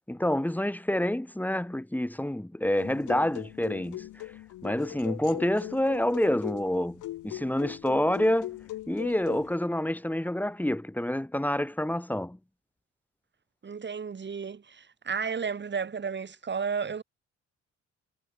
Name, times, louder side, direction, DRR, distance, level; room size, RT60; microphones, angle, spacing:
voice 1, 0.1-4.3 4.6-8.6 8.9-12.4, left 1 dB, 5° left, 1.9 m, -28 dB
sound 1, 2.7-9.5, left 15 dB, 90° left, 5.5 m, -40 dB
voice 2, 13.6-17.0, right 6 dB, 35° right, 2.6 m, -33 dB
cardioid pair, 90°, 30 cm